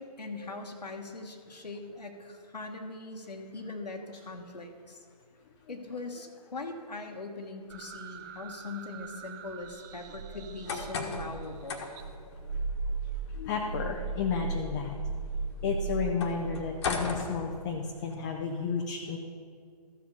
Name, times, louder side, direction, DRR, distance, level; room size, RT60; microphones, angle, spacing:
voice 1, 0.0-5.0 5.7-11.9, left 3 dB, 80° left, 2 dB, 1.4 m, -41 dB
sound 1, 7.7-11.6 12.0-16.1, right 4 dB, 30° right, 0.6 m, -37 dB
sound 2, 10.4-18.1, left 4 dB, 40° left, 1.4 m, -40 dB
voice 2, 13.3-15.0 15.6-19.2, left 5 dB, 25° left, 1 dB, 0.7 m, -32 dB
14.0 x 5.1 x 6.9 m, 2.1 s
figure-of-eight pair, 135°, 21 cm